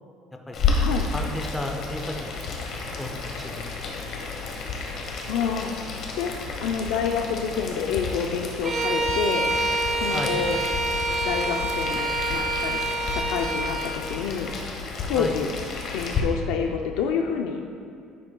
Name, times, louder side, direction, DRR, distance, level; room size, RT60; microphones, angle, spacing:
Boiling, 0.5-16.2, left 4 dB, 45° left, 1.1 m, -31 dB
voice 1, 0.5-0.8 1.1-2.5 3.0-3.8 4.0-4.1 10.1-10.3 15.1-15.3, left 1 dB, 5° left, 2 dB, 0.5 m, -33 dB
voice 2, 5.3-5.7 6.2-6.3 6.6-9.5 9.9-10.6 11.2-14.5 15.1-15.5 15.9-17.7, left 6 dB, 85° left, 3 dB, 0.5 m, -28 dB
Bowed string instrument, 8.6-14.0, right 2 dB, 30° right, 0.8 m, -27 dB
9.7 x 7.9 x 2.3 m, 2.4 s
cardioid pair, 155°, 0 cm